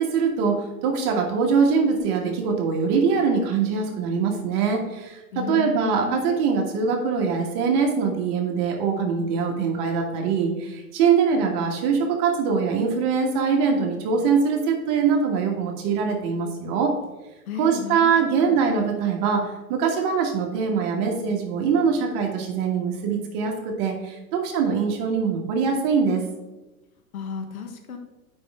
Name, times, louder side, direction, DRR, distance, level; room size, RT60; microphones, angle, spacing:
voice 1, 0.0-16.9 17.6-26.2, right 5 dB, 40° right, 2 dB, 1.5 m, -23 dB
voice 2, 5.3-6.2 17.5-18.6 27.1-28.0, left 6 dB, 70° left, 5 dB, 1.5 m, -33 dB
8.3 x 5.4 x 3.6 m, 1.1 s
hypercardioid pair, 125°, 45 cm